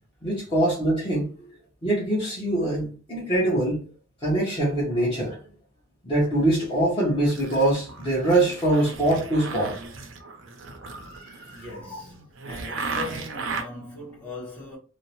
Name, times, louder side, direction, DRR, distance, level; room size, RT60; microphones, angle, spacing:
voice 1, 0.2-1.5 1.8-3.8 4.2-5.4 6.0-9.8 10.9-12.0, right 1 dB, 25° left, 0.9 m, -24 dB
sound 1, 6.2-7.0 7.3-13.6, right 4 dB, 75° right, 0.5 m, -36 dB
voice 2, 11.5-14.8, left 2 dB, 10° left, 1.2 m, -40 dB
2.6 x 2.0 x 2.8 m
head